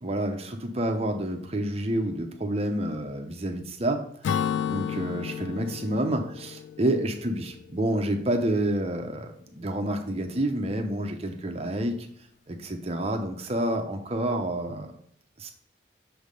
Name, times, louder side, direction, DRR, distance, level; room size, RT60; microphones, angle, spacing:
voice 1, 0.0-4.4 4.7-12.1 12.5-14.9 15.4-15.5, right 1 dB, 35° right, 4 dB, 0.6 m, -29 dB
Acoustic guitar / Strum, 4.2-7.9, left 8 dB, 80° left, 0.3 m, -32 dB
6.5 x 3.3 x 5.2 m, 0.68 s
head